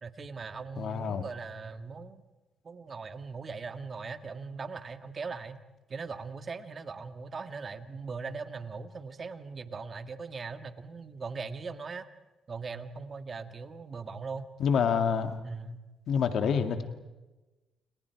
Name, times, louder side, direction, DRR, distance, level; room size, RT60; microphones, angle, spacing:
voice 1, 0.0-2.2 2.6-5.6 5.9-12.1 12.5-14.5 15.4-15.8, right 4 dB, 40° right, 8 dB, 1.8 m, -40 dB
voice 2, 0.8-1.3 14.6-15.4 16.1-16.8, left 6 dB, 65° left, 6 dB, 2.1 m, -27 dB
29.5 x 28.5 x 4.7 m, 1.1 s
cardioid pair, 90°, 0 cm